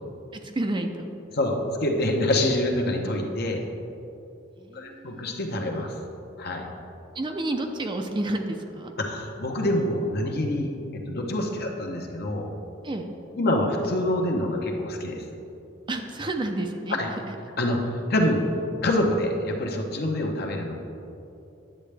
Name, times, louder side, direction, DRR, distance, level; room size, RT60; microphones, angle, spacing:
voice 1, 0.3-1.1 4.6-5.3 7.1-8.9 12.8-13.1 15.9-17.0 17.3-17.4, right 2 dB, 25° right, 4 dB, 0.5 m, -30 dB
voice 2, 1.3-3.6 4.7-6.0 6.4-6.7 9.0-12.5 13.4-15.2 16.9-17.1 17.6-18.5 18.8-20.7, left 1 dB, 55° left, 2 dB, 0.9 m, -26 dB
10.0 x 7.5 x 3.4 m, 2.8 s
head